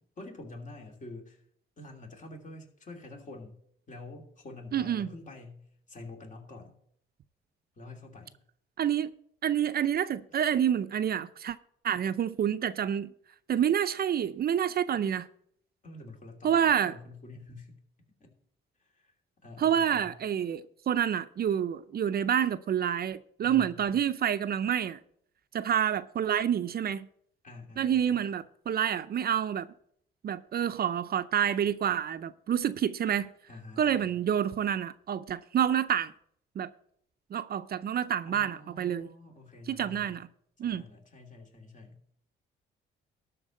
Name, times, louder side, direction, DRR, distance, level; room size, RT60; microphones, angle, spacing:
voice 1, 0.2-1.4 1.8-3.6 3.9-6.8 7.8-8.4 15.8-17.8 18.2-18.3 18.9-19.1 19.4-20.2 23.4-24.0 27.4-28.2 33.5-34.2 38.2-40.2 40.6-42.0, left 2 dB, 40° left, 2.8 m, -47 dB
voice 2, 4.7-5.1 8.8-9.1 9.4-11.6 11.8-13.1 13.5-15.3 16.4-16.9 19.6-25.0 25.5-27.1 27.8-29.7 30.2-33.3 33.8-36.1 36.6-36.7 37.3-39.1 39.7-40.3 40.6-40.8, right 9 dB, 50° right, 0.6 m, -28 dB
12.5 x 4.6 x 7.6 m
cardioid pair, 90°, 20 cm